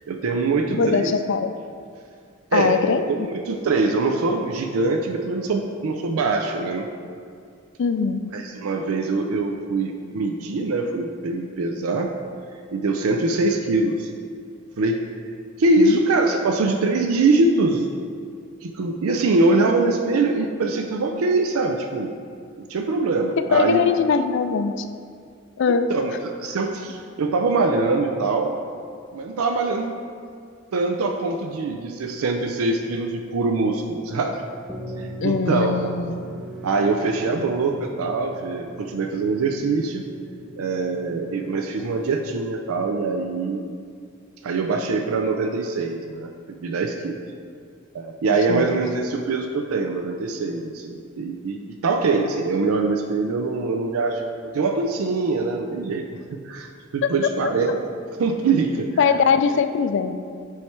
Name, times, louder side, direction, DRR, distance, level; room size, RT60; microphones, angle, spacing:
voice 1, 0.1-1.1 2.5-2.8 3.1-6.9 8.3-12.1 12.7-14.1 14.8-15.0 15.6-17.9 18.6-22.1 22.6-23.8 25.9-28.5 29.1-29.9 30.7-34.4 35.0-35.9 36.6-40.1 40.6-43.6 44.4-47.2 47.9-54.2 54.5-56.1 56.3-57.8 58.2-58.9, right 3 dB, 80° right, 4 dB, 0.4 m, -23 dB
voice 2, 0.7-1.5 2.5-3.3 7.8-8.2 15.8-16.0 23.5-24.9 25.6-25.9 35.2-36.1 48.5-48.7 57.0-57.3 59.0-60.1, left 5 dB, 55° left, 9 dB, 0.3 m, -21 dB
sound 1, 34.7-42.2, right 1 dB, ahead, 0.5 m, -39 dB
8.5 x 3.2 x 4.5 m, 2.2 s
head